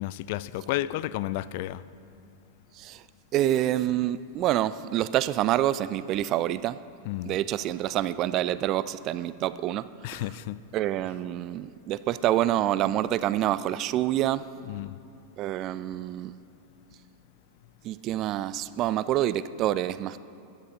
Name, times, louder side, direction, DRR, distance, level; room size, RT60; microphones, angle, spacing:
voice 1, 0.0-1.8 7.0-7.4 10.0-10.6 14.6-15.0, left 15 dB, 50° left, 0.4 m, -32 dB
voice 2, 3.3-6.8 7.3-10.2 10.7-14.4 15.4-16.3 17.8-20.2, right 13 dB, 35° right, 0.4 m, -27 dB
21.5 x 10.0 x 4.0 m
figure-of-eight pair, 90°, 0 cm